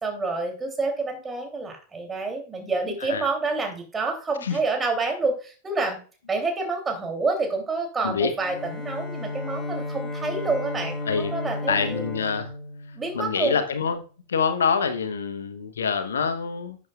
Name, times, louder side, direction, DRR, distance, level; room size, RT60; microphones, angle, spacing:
voice 1, 0.0-6.0 6.3-12.1 12.9-13.6, right 3 dB, 15° right, 4 dB, 3.1 m, -28 dB
Bowed string instrument, 8.3-13.5, left 2 dB, 10° left, 4.4 m, -34 dB
voice 2, 11.7-12.5 13.1-14.0 14.3-16.8, left 6 dB, 65° left, 10 dB, 1.0 m, -26 dB
12.5 x 8.4 x 2.4 m, 0.37 s
figure-of-eight pair, 90°, 0 cm